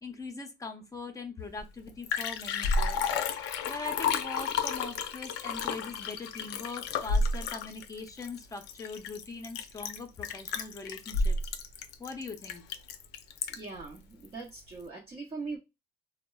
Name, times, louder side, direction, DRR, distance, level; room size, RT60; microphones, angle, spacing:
voice 1, 0.0-3.0 3.7-11.4 12.0-12.6, left 3 dB, 20° left, 0.6 m, -41 dB
Liquid, 1.6-1.7 1.9-13.8 14.2-14.3, left 4 dB, 85° left, 0.5 m, -32 dB
voice 2, 13.6-15.6, right 4 dB, 30° right, 0.7 m, -41 dB
3.5 x 2.1 x 2.2 m
cardioid pair, 110°, 17 cm